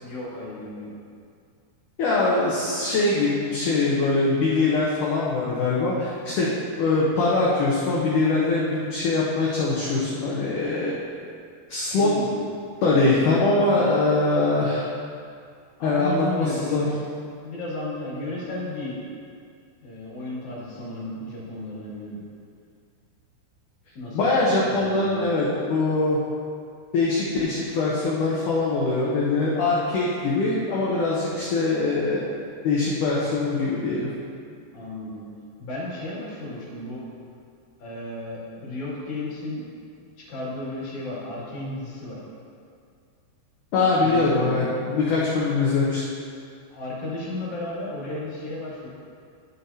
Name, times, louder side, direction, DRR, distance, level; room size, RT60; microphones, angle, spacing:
voice 1, 0.0-0.9 11.9-12.4 15.8-16.8 17.4-19.0 19.8-22.2 23.9-24.4 24.7-25.2 34.7-35.2 35.6-37.1 37.8-39.6 40.2-42.2 44.0-44.5 46.7-48.9, left 2 dB, 50° left, -7 dB, 3.3 m, -34 dB
voice 2, 2.0-6.5 6.8-11.0 11.7-12.1 12.8-14.9 15.8-16.9 24.1-26.2 26.9-32.2 32.6-34.1 43.7-46.0, left 3 dB, 75° left, -6 dB, 1.8 m, -22 dB
12.5 x 7.6 x 2.8 m, 2.3 s
omnidirectional pair, 5.0 m